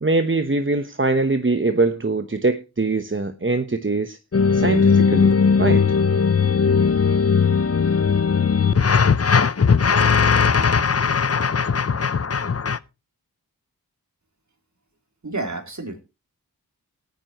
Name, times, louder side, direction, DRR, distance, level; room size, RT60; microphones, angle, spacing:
voice 1, 0.0-4.2 4.5-5.3 5.6-5.8, right 3 dB, 30° right, 1.1 m, -22 dB
sound 1, 4.3-12.8, left 5 dB, 40° left, 0.7 m, -18 dB
voice 2, 15.2-16.0, right 2 dB, 50° right, 3.3 m, -30 dB
19.5 x 9.1 x 3.0 m
cardioid pair, 45°, 37 cm